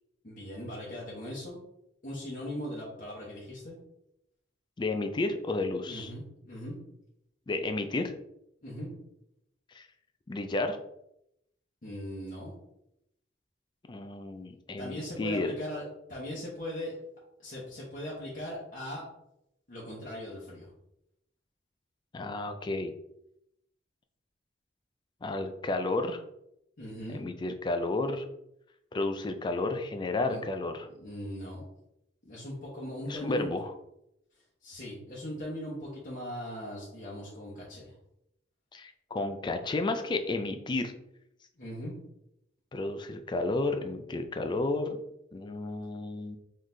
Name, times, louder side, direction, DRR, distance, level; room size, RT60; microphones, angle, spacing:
voice 1, 0.2-1.6 2.0-3.8 5.9-6.8 8.6-8.9 11.8-12.6 14.8-16.9 17.4-19.1 19.7-20.7 26.8-27.2 30.2-30.4 30.9-31.7 32.2-33.5 34.6-37.9 41.6-42.0, equal, 45° left, -6 dB, 1.0 m, -39 dB
voice 2, 4.8-6.1 7.5-8.1 9.7-9.9 10.3-10.8 13.9-15.5 22.1-22.9 25.2-26.2 27.1-28.2 28.9-30.9 33.1-33.7 38.7-40.9 42.7-45.0 45.3-46.4, left 2 dB, 25° left, 7 dB, 0.3 m, -32 dB
3.9 x 3.1 x 2.7 m, 0.82 s
head